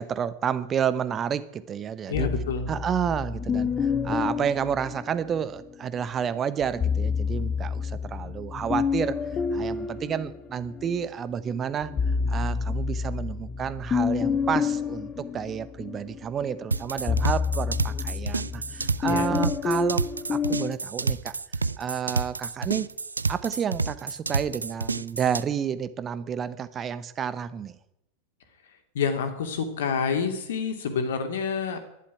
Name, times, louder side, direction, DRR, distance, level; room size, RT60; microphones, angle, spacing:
voice 1, 0.0-2.3 2.7-9.2 9.5-11.9 12.3-21.3 21.8-22.9 23.3-27.8, right 8 dB, 25° right, 15 dB, 0.9 m, -30 dB
voice 2, 2.1-2.7 19.0-19.3 28.9-31.8, left 5 dB, 60° left, 7 dB, 2.6 m, -28 dB
sound 1, 2.1-5.6 6.6-11.0 11.5-20.7, left 6 dB, 20° left, 1.0 m, -29 dB
sound 2, 16.7-25.4, right 4 dB, 75° right, 0.5 m, -29 dB
11.5 x 11.5 x 9.7 m, 0.83 s
figure-of-eight pair, 90°, 0 cm